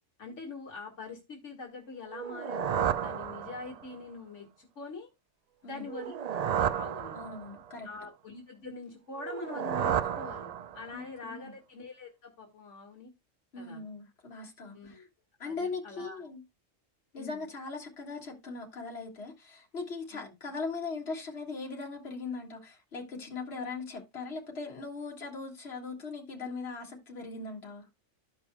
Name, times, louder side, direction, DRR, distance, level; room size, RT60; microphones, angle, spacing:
voice 1, 0.2-5.1 5.6-7.2 7.8-13.1 13.6-13.8 14.7-15.1 15.4-16.2 17.1-17.4 20.1-20.3, left 3 dB, 75° left, 2.0 m, -44 dB
sound 1, 2.1-3.9 5.9-7.7 9.2-11.0, right 9 dB, 80° right, 0.3 m, -32 dB
voice 2, 7.1-7.9 10.9-11.5 13.5-15.0 15.4-16.4 17.1-27.9, left 4 dB, 55° left, 2.1 m, -39 dB
14.0 x 5.4 x 2.2 m
omnidirectional pair, 1.3 m